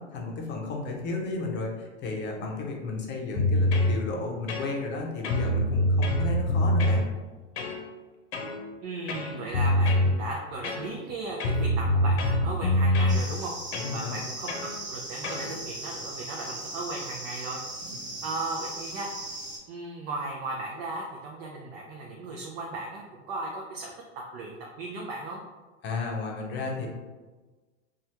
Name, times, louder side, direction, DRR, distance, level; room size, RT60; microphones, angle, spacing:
voice 1, 0.0-7.0 13.8-14.2 25.8-26.9, left 3 dB, 30° left, 0 dB, 0.7 m, -33 dB
sound 1, 3.3-3.9 4.5-5.0 5.2-7.0 7.6-7.8 8.3-8.6 9.1-10.1 10.6-11.1 11.4-13.2 13.7-13.9 14.5-14.7 15.2-15.5, left 1 dB, 65° left, 0.8 m, -24 dB
voice 2, 8.8-13.5 13.9-17.6 18.2-19.1 19.7-23.9 24.3-25.4, right 2 dB, 45° right, -1 dB, 0.6 m, -36 dB
sound 2, 13.1-19.6, right 1 dB, 10° right, 0.8 m, -38 dB
3.0 x 2.4 x 2.8 m, 1.3 s
hypercardioid pair, 115°, 35 cm